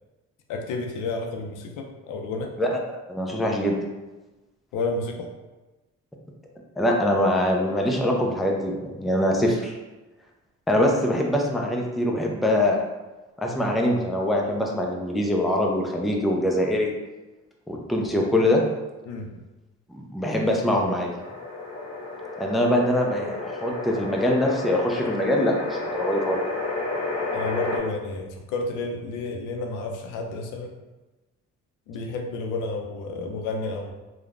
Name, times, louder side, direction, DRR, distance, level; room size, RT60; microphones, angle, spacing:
voice 1, 0.5-2.5 4.7-5.3 19.1-19.4 27.3-30.7 31.9-33.9, left 3 dB, 85° left, 3 dB, 0.5 m, -31 dB
voice 2, 3.1-3.8 6.8-9.7 10.7-12.8 13.4-16.9 17.7-18.6 20.1-21.1 22.4-26.4, left 1 dB, ahead, 0 dB, 0.3 m, -23 dB
sound 1, 21.2-27.8, left 3 dB, 60° left, 0.8 m, -31 dB
3.1 x 2.1 x 2.4 m, 1.1 s
cardioid pair, 90°, 30 cm